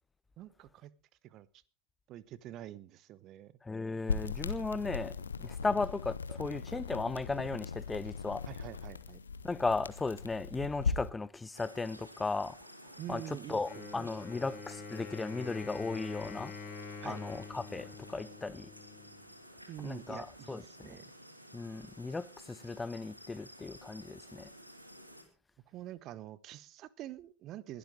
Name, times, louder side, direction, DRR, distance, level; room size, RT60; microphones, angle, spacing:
voice 1, 0.4-0.9 1.2-1.6 2.1-3.5 8.4-9.2 13.0-14.2 17.0-17.2 19.7-21.0 25.7-27.8, right 13 dB, 35° right, 0.9 m, -46 dB
voice 2, 3.6-8.5 9.4-12.6 13.1-16.5 17.0-18.7 19.8-21.0 21.5-24.5, left 3 dB, 10° left, 0.6 m, -36 dB
sound 1, 4.1-11.1, left 5 dB, 70° left, 1.0 m, -38 dB
sound 2, 11.5-25.2, equal, 90° right, 2.5 m, -53 dB
Wind instrument woodwind instrument, 13.6-19.3, left 5 dB, 35° left, 5.6 m, -46 dB
21.0 x 12.0 x 3.9 m
figure-of-eight pair, 90°, 0 cm